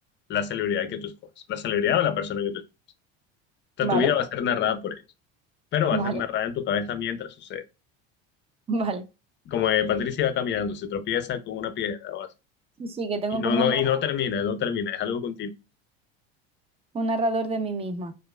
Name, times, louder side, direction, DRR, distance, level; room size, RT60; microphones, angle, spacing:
voice 1, 0.3-1.1 1.5-2.6 3.8-5.0 5.7-7.6 9.5-12.3 13.3-15.5, left 8 dB, 35° left, 0.5 m, -26 dB
voice 2, 3.8-4.1 5.9-6.2 8.7-9.0 12.8-13.8 16.9-18.1, right 2 dB, 20° right, 0.4 m, -27 dB
4.5 x 2.4 x 2.3 m
supercardioid pair, 115°, 31 cm